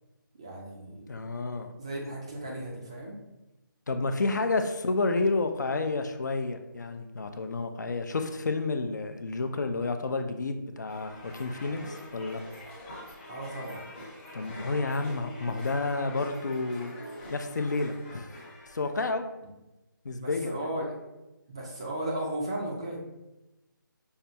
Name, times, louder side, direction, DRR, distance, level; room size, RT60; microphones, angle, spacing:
voice 1, 0.4-1.0 1.8-3.2 13.3-13.9 14.4-15.1 20.2-21.0 21.5-23.0, right 1 dB, 15° right, -2 dB, 0.3 m, -36 dB
voice 2, 1.1-1.7 3.9-12.4 14.3-16.9 17.3-18.3 18.7-19.2 20.0-20.7, left 3 dB, 55° left, 7 dB, 0.4 m, -30 dB
sound 1, 10.9-18.9, left 1 dB, 25° left, 0.8 m, -45 dB
5.5 x 2.3 x 2.7 m, 0.99 s
figure-of-eight pair, 160°, 11 cm